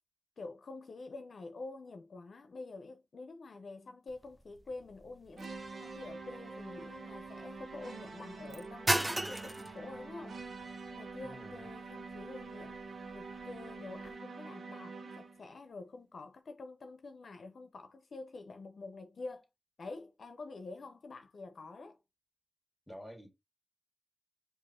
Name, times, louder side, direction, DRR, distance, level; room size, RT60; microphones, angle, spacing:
voice 1, 0.4-12.8 13.1-19.5 19.8-22.0, left 3 dB, 75° left, 0.7 m, -47 dB
sound 1, 4.1-14.2, right 1 dB, 15° right, 0.4 m, -40 dB
sound 2, 5.4-15.5, right 3 dB, 80° right, 1.0 m, -46 dB
voice 2, 11.2-11.7 22.9-23.3, equal, 10° left, 1.8 m, -49 dB
4.7 x 2.7 x 4.3 m
wide cardioid pair, 75°, 0 cm